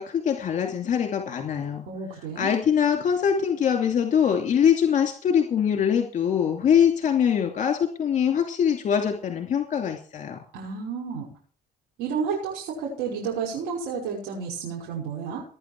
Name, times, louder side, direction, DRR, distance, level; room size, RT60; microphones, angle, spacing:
voice 1, 0.0-1.8 2.4-10.4, left 8 dB, 45° left, 4 dB, 2.6 m, -23 dB
voice 2, 1.9-2.5 10.5-11.3 12.0-15.4, right 6 dB, 90° right, -2 dB, 5.7 m, -31 dB
18.5 x 10.0 x 4.6 m, 0.43 s
cardioid pair, 110°, 17 cm